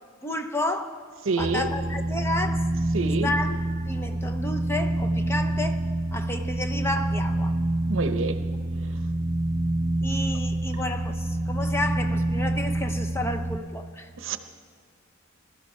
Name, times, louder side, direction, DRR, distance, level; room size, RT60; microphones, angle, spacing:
voice 1, 0.2-1.0 1.4-2.7 3.2-5.8 6.1-7.6 10.0-14.1, left 1 dB, 10° left, 5 dB, 0.7 m, -31 dB
voice 2, 1.3-1.7 2.9-3.3 7.9-8.4 14.2-14.4, right 4 dB, 70° right, 10 dB, 0.8 m, -27 dB
sound 1, 1.4-13.6, right 1 dB, 30° right, 0.8 m, -27 dB
20.5 x 12.5 x 4.3 m, 2.2 s
head